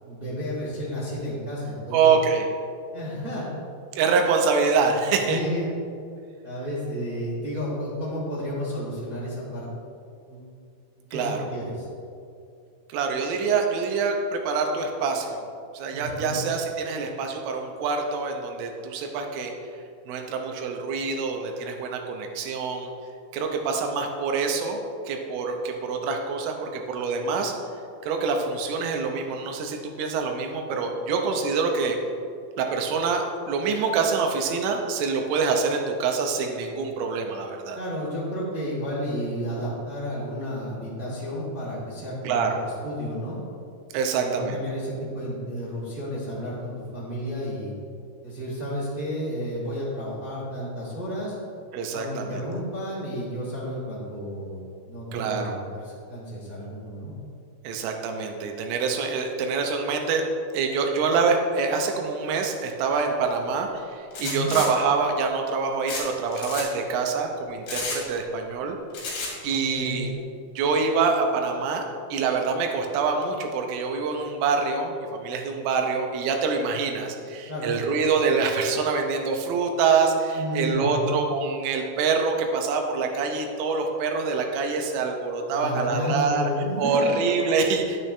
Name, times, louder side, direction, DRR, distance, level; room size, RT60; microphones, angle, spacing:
voice 1, 0.0-2.1 2.9-3.5 4.9-5.7 6.4-9.7 10.3-10.4 11.1-11.8 15.9-16.4 37.7-42.4 42.6-43.4 44.1-47.7 48.2-51.3 51.9-57.1 64.2-64.6 69.4-70.0 77.5-77.7 80.3-81.1 85.5-87.2, equal, 25° right, -8 dB, 1.0 m, -32 dB
voice 2, 1.9-2.5 4.0-5.4 11.1-11.4 12.9-15.4 15.7-19.5 20.1-22.9 23.3-24.8 25.1-27.5 28.0-32.0 32.6-37.8 42.2-42.6 43.9-44.6 51.7-52.5 55.1-55.6 57.6-60.3 60.5-68.8 69.4-70.1 70.5-71.8 72.1-86.5 86.8-88.0, right 5 dB, 85° right, 3 dB, 3.4 m, -25 dB
sound 1, 64.1-64.7 65.9-66.0 66.3-66.6 67.7-68.0 68.9-69.3, left 3 dB, 55° left, 3.6 m, -31 dB
10.5 x 9.3 x 3.3 m, 2.5 s
omnidirectional pair, 5.7 m